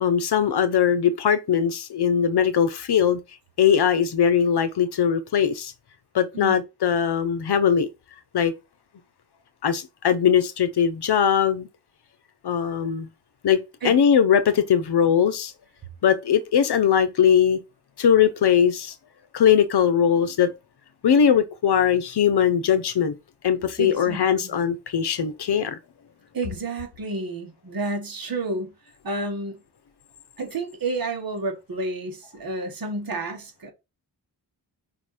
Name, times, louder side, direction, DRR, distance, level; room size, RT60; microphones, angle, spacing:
voice 1, 0.0-3.2 3.6-5.7 6.1-7.9 8.3-8.5 9.6-11.7 12.4-13.1 13.4-15.5 16.0-17.6 18.0-18.9 19.3-20.5 21.0-23.2 23.4-25.8, left 8 dB, 70° left, 0.9 m, -20 dB
voice 2, 23.8-24.6 26.3-28.7 29.0-29.6 30.4-33.7, right 2 dB, 55° right, 2.0 m, -30 dB
5.2 x 4.0 x 5.0 m
wide cardioid pair, 150°, 41 cm